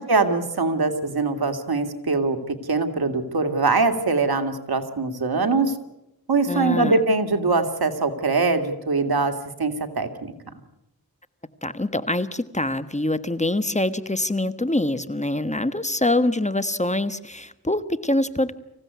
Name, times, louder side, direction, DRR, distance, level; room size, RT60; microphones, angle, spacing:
voice 1, 0.0-5.8 6.3-9.3 9.6-10.3, right 3 dB, 80° right, 6 dB, 2.1 m, -22 dB
voice 2, 6.5-6.9 11.6-18.5, left 1 dB, 20° left, 12 dB, 1.4 m, -24 dB
25.5 x 16.0 x 9.5 m, 0.91 s
cardioid pair, 45°, 37 cm